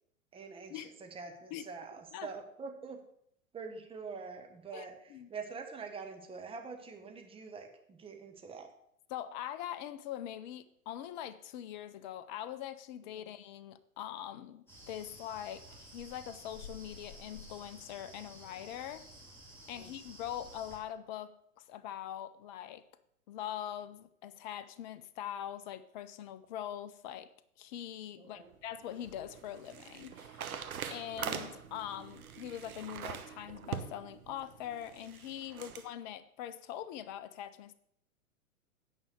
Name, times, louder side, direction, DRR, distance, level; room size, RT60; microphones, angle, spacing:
voice 1, 0.3-3.0 3.5-8.7 13.0-13.3 19.7-19.9 28.2-28.5 35.5-35.7, right 5 dB, 10° right, 1.3 m, -45 dB
voice 2, 9.1-19.1 19.7-22.8 23.3-27.3 27.6-37.7, left 11 dB, 35° left, 0.5 m, -43 dB
sound 1, 14.7-20.8, left 1 dB, 5° left, 2.9 m, -52 dB
sound 2, 28.5-35.9, right 8 dB, 75° right, 1.1 m, -43 dB
9.5 x 5.5 x 6.4 m
hypercardioid pair, 115°, 43 cm